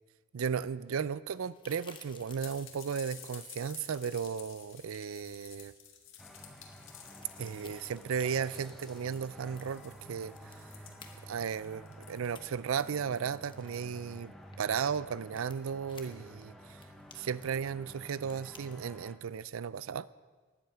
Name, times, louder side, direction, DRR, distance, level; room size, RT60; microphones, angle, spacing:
voice 1, 0.3-5.7 7.4-10.6 11.3-16.8 17.1-20.1, right 7 dB, 75° right, 19 dB, 0.4 m, -35 dB
sound 1, 1.3-18.7, left 5 dB, 20° left, 1.1 m, -58 dB
sound 2, 2.4-13.5, left 8 dB, 60° left, 1.9 m, -53 dB
sound 3, 6.2-19.2, equal, ahead, 0.8 m, -52 dB
15.5 x 11.0 x 5.7 m, 1.4 s
head